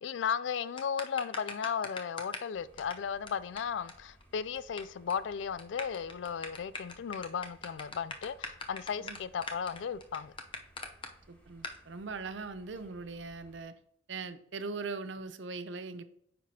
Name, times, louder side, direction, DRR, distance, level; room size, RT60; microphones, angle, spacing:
voice 1, 0.0-10.3, left 7 dB, 65° left, 0.3 m, -35 dB
sound 1, 0.8-2.5 2.8-2.9 3.3-3.4 3.6-3.7 3.9-4.0 4.2-4.8 5.1-5.3 5.6-11.1 11.6-11.8, left 3 dB, 30° left, 0.7 m, -41 dB
sound 2, 2.5-13.6, right 1 dB, 10° left, 1.3 m, -62 dB
voice 2, 11.3-13.7 14.1-16.0, right 4 dB, 65° right, 0.6 m, -40 dB
9.4 x 5.8 x 2.8 m
head